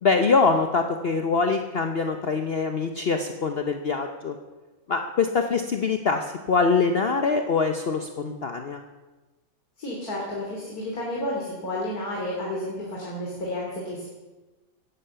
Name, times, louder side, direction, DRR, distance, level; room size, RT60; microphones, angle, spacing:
voice 1, 0.0-4.3 4.9-8.8, left 4 dB, 45° left, 6 dB, 1.0 m, -24 dB
voice 2, 9.8-14.1, left 1 dB, 90° left, -3 dB, 3.5 m, -31 dB
16.5 x 11.5 x 6.9 m, 1.2 s
omnidirectional pair, 1.5 m